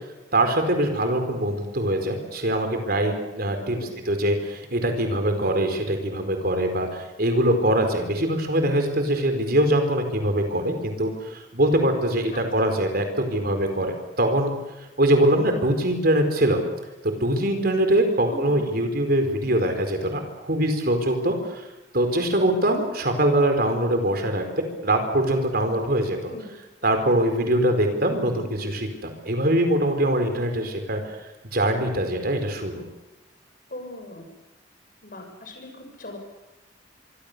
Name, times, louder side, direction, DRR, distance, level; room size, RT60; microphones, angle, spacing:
voice 1, 0.3-3.8 4.1-14.5 15.0-16.6 17.0-21.6 21.9-26.3 26.8-31.0 31.5-32.8, right 1 dB, 55° right, 6 dB, 4.6 m, -23 dB
voice 2, 12.3-12.8 18.2-18.6 26.2-26.5 33.7-34.3 35.0-36.2, left 1 dB, 50° left, 4 dB, 6.4 m, -40 dB
25.0 x 24.5 x 6.9 m, 1.0 s
head